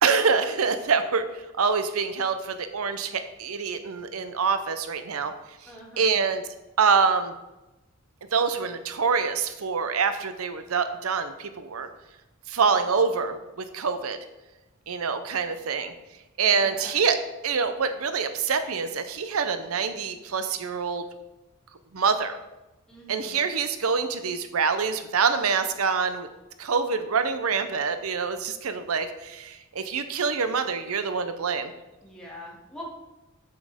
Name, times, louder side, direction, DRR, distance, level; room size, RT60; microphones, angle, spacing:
voice 1, 0.0-1.2 1.6-5.3 5.6-5.7 6.0-6.4 6.8-7.3 8.3-11.9 12.5-14.2 14.9-15.9 16.4-17.2 17.4-21.0 21.9-22.3 23.1-26.3 26.6-31.7, right 5 dB, 90° right, 9 dB, 0.7 m, -25 dB
voice 2, 5.7-6.2 16.4-16.9 22.9-23.4 32.0-32.8, left 1 dB, 5° left, -6 dB, 2.5 m, -44 dB
8.5 x 7.5 x 3.5 m, 0.99 s
head